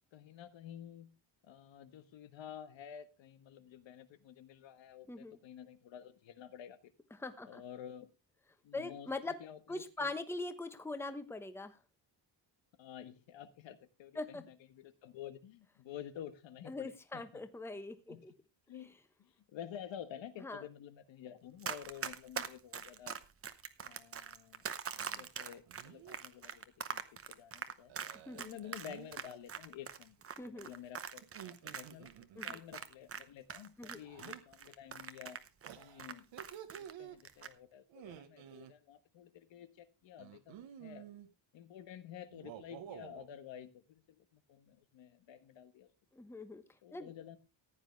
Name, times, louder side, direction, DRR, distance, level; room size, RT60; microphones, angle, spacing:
voice 1, 0.1-1.1 1.4-6.9 7.4-8.1 8.6-10.1 12.8-17.4 18.1-18.2 18.7-18.9 19.2-23.2 23.8-24.6 25.1-27.9 28.3-30.2 30.5-35.4 35.7-36.3 36.7-41.1 41.5-45.9 46.8-47.4, left 10 dB, 75° left, 11 dB, 1.4 m, -51 dB
voice 2, 5.1-5.4 7.2-7.6 8.7-9.4 9.7-11.8 14.2-14.4 16.7-18.3 20.4-20.6 28.3-28.6 30.4-30.7 32.4-32.6 33.8-34.0 46.1-46.6 46.9-47.1, left 2 dB, 5° left, 10 dB, 1.0 m, -42 dB
Run, 21.6-33.2 33.5-36.9 37.2-37.5, right 7 dB, 30° right, 0.9 m, -43 dB
sound 1, 24.9-25.3 25.7-26.2 27.9-29.2 31.2-32.6 34.0-34.4 35.6-37.2 37.9-38.7 40.2-41.3 42.3-43.3, right 10 dB, 80° right, 1.3 m, -51 dB
15.0 x 9.8 x 3.3 m, 0.27 s
cardioid pair, 155°, 45 cm